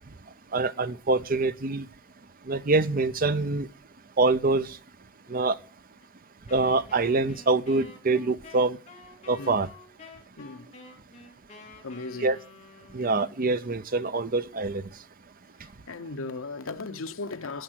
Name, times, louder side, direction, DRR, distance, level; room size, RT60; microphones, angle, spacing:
voice 1, 0.5-1.9 2.4-3.7 4.2-4.8 5.3-5.6 6.5-8.8 9.3-9.7 12.2-12.4 12.9-14.8, right 3 dB, 45° right, 0.7 m, -25 dB
Wind instrument woodwind instrument, 6.5-13.3, left 3 dB, 30° left, 3.1 m, -49 dB
voice 2, 10.4-10.7 11.8-12.4 15.6-17.6, left 3 dB, 70° left, 0.9 m, -37 dB
11.5 x 9.8 x 6.4 m
head